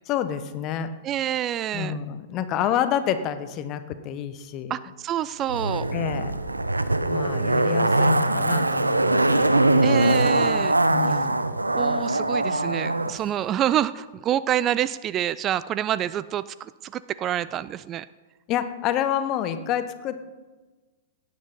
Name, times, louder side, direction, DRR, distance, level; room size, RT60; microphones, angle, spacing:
voice 1, 0.1-0.9 1.7-4.7 5.9-6.3 7.1-9.9 10.9-11.4 18.5-20.2, left 9 dB, 30° left, 11 dB, 1.0 m, -28 dB
voice 2, 1.0-2.0 4.7-5.9 9.8-10.8 11.7-18.1, right 11 dB, 25° right, 17 dB, 0.3 m, -27 dB
Zipper (clothing), 5.5-13.1 13.4-13.5, right 2 dB, 80° right, 0.7 m, -22 dB
17.0 x 9.5 x 5.4 m, 1.3 s
figure-of-eight pair, 100°, 0 cm